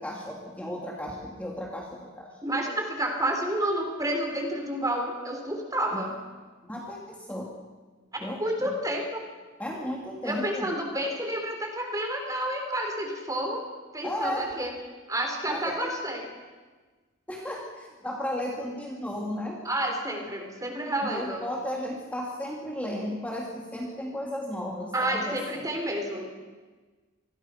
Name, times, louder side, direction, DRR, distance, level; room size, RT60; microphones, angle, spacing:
voice 1, 0.0-2.3 5.9-6.0 6.6-7.5 8.2-8.7 9.6-10.7 14.0-14.5 15.5-15.9 17.3-19.6 21.0-25.6, left 1 dB, 5° left, -2 dB, 2.7 m, -34 dB
voice 2, 2.4-6.1 8.1-9.2 10.2-13.6 13.9-14.7 15.1-16.3 19.6-21.4 24.9-26.4, right 1 dB, 15° right, 3 dB, 4.1 m, -30 dB
27.0 x 21.5 x 6.0 m, 1.3 s
head